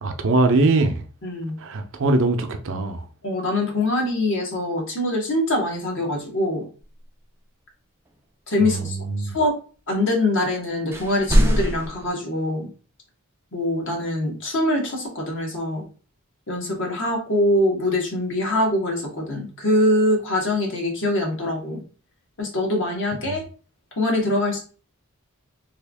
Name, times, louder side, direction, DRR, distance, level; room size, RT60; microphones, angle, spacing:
voice 1, 0.0-1.0 1.6-3.0 8.6-9.3 23.2-23.4, right 2 dB, 60° right, 0.6 m, -22 dB
voice 2, 1.2-1.6 3.2-6.7 8.5-9.5 9.9-12.7 13.5-15.8 16.5-21.8 22.4-23.4 24.0-24.6, left 1 dB, 60° left, 1.4 m, -23 dB
sound 1, 10.9-12.1, equal, 10° right, 0.4 m, -20 dB
3.4 x 2.4 x 3.4 m
head